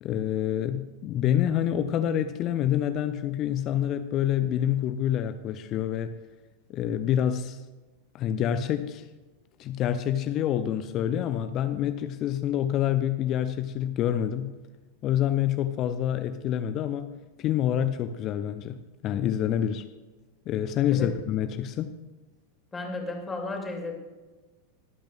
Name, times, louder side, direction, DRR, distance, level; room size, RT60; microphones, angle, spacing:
voice 1, 0.0-6.1 6.7-7.6 8.1-9.1 9.6-14.6 15.0-17.1 17.4-19.9 20.5-21.9, left 10 dB, 35° left, 10 dB, 0.6 m, -27 dB
voice 2, 22.7-24.0, left 2 dB, 10° left, 0 dB, 2.7 m, -33 dB
25.0 x 9.0 x 2.5 m, 1.2 s
figure-of-eight pair, 90°, 0 cm